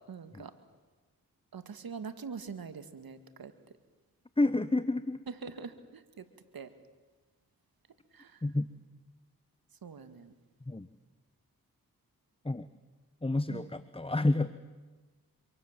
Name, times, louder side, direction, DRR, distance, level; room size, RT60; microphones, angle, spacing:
voice 1, 0.1-0.5 1.5-3.5 5.3-6.3 6.5-6.7 8.1-8.4 9.8-10.3 13.5-13.7, right 5 dB, 70° right, 10 dB, 2.2 m, -43 dB
voice 2, 4.4-5.2 8.4-8.7 10.7-10.9 12.4-12.7 13.2-14.5, left 2 dB, 15° left, 13 dB, 1.1 m, -29 dB
26.5 x 24.0 x 7.6 m, 1.3 s
cardioid pair, 40°, 37 cm